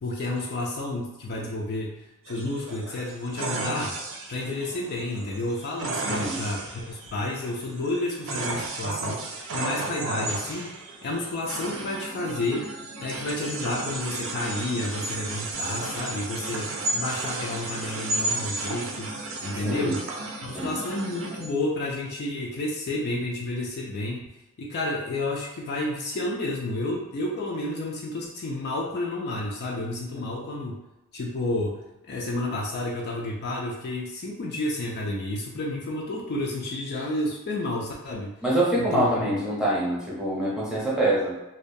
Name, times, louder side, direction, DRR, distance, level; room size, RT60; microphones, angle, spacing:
voice 1, 0.0-2.0 2.3-4.0 4.3-9.3 9.5-10.7 11.0-12.7 13.0-19.1 19.4-20.0 20.4-24.2 24.6-30.8 31.1-38.3 38.8-39.4, left 2 dB, 50° left, -2 dB, 0.4 m, -30 dB
sound 1, 2.3-21.5, right 2 dB, 65° right, 0.4 m, -33 dB
voice 2, 6.0-6.4 19.6-20.0 20.5-20.8 38.4-41.4, right 1 dB, 5° right, -7 dB, 0.7 m, -25 dB
2.2 x 2.1 x 2.6 m, 0.99 s
head